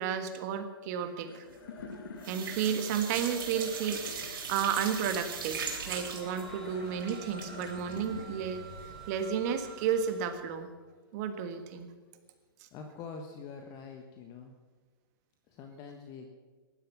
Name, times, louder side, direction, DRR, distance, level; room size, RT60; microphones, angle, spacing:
voice 1, 0.0-1.5 2.3-10.7 11.1-11.9, right 7 dB, 45° right, 8 dB, 1.5 m, -32 dB
sound 1, 1.2-11.7, left 5 dB, 70° left, 1.7 m, -49 dB
sound 2, 1.5-1.9 2.2-9.1 9.4-9.5 9.8-9.9, right 6 dB, 65° right, 3.5 m, -40 dB
sound 3, 3.4-3.5 3.8-4.4 4.7-10.5, right 4 dB, ahead, 3.0 m, -50 dB
voice 2, 12.7-14.5 15.5-16.3, left 5 dB, 35° left, 4 dB, 1.3 m, -45 dB
16.0 x 11.5 x 5.9 m, 1.4 s
hypercardioid pair, 130°, 12 cm